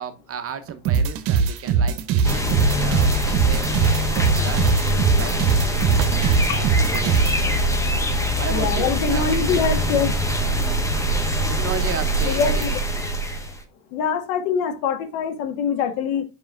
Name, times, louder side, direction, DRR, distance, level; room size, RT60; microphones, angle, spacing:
voice 1, 0.0-4.6 5.2-5.3 6.4-7.4 8.4-9.3 11.5-12.7, right 8 dB, 30° right, 0.9 m, -34 dB
sound 1, 0.8-7.4, right 6 dB, 55° right, 1.1 m, -20 dB
sound 2, 1.2-1.3 3.1-3.6 3.9-4.0 5.8-6.7, right 9 dB, 75° right, 0.7 m, -28 dB
sound 3, 2.2-13.6, equal, 5° left, 1.2 m, -23 dB
voice 2, 8.5-10.1 12.3-12.7 13.9-16.2, left 6 dB, 60° left, 1.7 m, -24 dB
7.0 x 5.4 x 2.5 m
hypercardioid pair, 90°, 48 cm